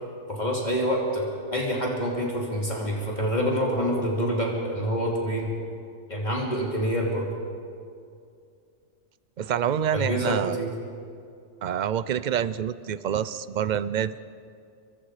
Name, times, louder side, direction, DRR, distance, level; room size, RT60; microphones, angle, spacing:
voice 1, 0.3-5.5 6.1-7.3 9.9-10.7, equal, 35° left, -2 dB, 3.2 m, -27 dB
voice 2, 9.4-10.6 11.6-14.2, right 9 dB, 45° right, 15 dB, 0.6 m, -27 dB
30.0 x 24.0 x 4.9 m, 2.4 s
omnidirectional pair, 1.3 m